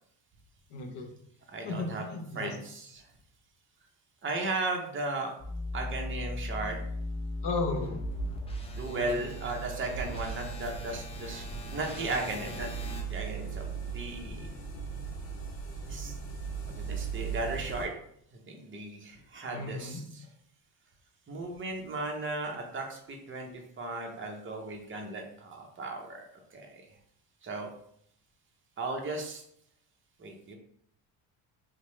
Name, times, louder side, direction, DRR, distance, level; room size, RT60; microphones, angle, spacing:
voice 1, 0.7-1.1 1.6-2.6 7.4-8.0 8.8-9.2 19.5-20.0, left 3 dB, 55° left, 4 dB, 0.8 m, -35 dB
voice 2, 1.5-2.0 2.3-3.0 4.2-5.3 5.7-6.8 8.7-11.4 11.7-12.7 13.1-14.5 15.9-16.1 16.8-17.9 18.5-20.0 21.3-23.5 23.8-26.2 26.5-26.8 27.4-27.7 28.8-29.4 30.2-30.5, right 2 dB, 25° right, 2 dB, 0.7 m, -36 dB
sound 1, 5.4-13.0, left 2 dB, 15° left, 0.4 m, -39 dB
sound 2, 7.9-17.9, right 5 dB, 90° left, 0.8 m, -38 dB
2.8 x 2.1 x 3.1 m, 0.69 s
supercardioid pair, 75°, 49 cm